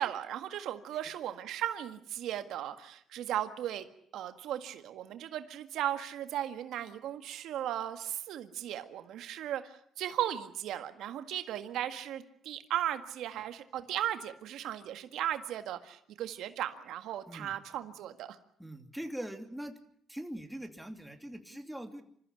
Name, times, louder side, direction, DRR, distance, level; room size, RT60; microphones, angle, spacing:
voice 1, 0.0-3.9 4.1-18.4, right 11 dB, 85° right, 8 dB, 1.7 m, -36 dB
voice 2, 18.6-19.7 20.1-22.0, right 1 dB, 5° right, 5 dB, 2.8 m, -42 dB
27.0 x 14.5 x 9.8 m, 0.67 s
cardioid pair, 90°, 0 cm